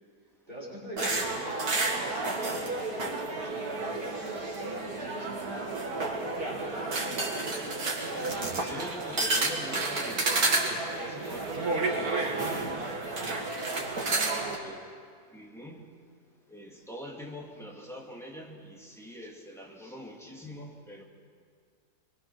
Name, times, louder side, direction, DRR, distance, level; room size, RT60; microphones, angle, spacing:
voice 1, 0.5-7.7, right 1 dB, 30° right, -5 dB, 5.9 m, -44 dB
sound 1, 1.0-14.6, right 3 dB, 75° right, 2.6 m, -31 dB
voice 2, 8.5-13.0 13.9-14.9 15.3-15.9 16.5-21.0, equal, ahead, -2 dB, 2.5 m, -44 dB
24.0 x 22.5 x 6.2 m, 2.1 s
omnidirectional pair, 1.6 m